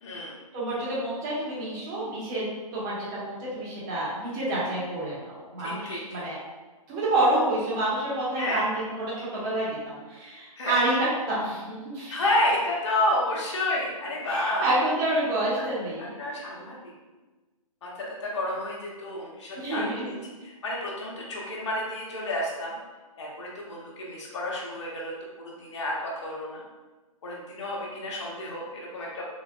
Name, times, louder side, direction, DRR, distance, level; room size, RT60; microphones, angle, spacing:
voice 1, 0.0-0.3 5.6-6.0 8.4-8.6 10.6-10.8 12.1-14.6 15.5-15.6 16.0-16.9 17.8-22.7 23.2-26.6 27.2-29.2, left 1 dB, 50° left, -4 dB, 1.0 m, -30 dB
voice 2, 0.5-2.5 2.7-6.4 6.9-12.3 14.3-16.1 19.6-20.1, right 1 dB, 30° right, -7 dB, 1.4 m, -28 dB
3.8 x 2.5 x 2.3 m, 1.2 s
hypercardioid pair, 140°, 18 cm